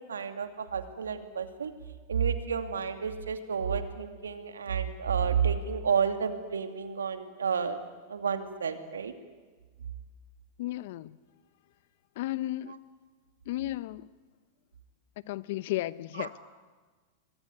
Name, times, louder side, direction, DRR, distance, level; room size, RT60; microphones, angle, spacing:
voice 1, 0.1-1.7 2.1-7.8 8.1-9.1 16.2-16.3, right 6 dB, 90° right, 8 dB, 2.6 m, -30 dB
voice 2, 10.6-11.2 12.2-12.8 13.5-14.1 15.2-16.4, left 16 dB, 65° left, 18 dB, 0.9 m, -34 dB
25.0 x 23.0 x 9.6 m, 1.4 s
hypercardioid pair, 105°, 0 cm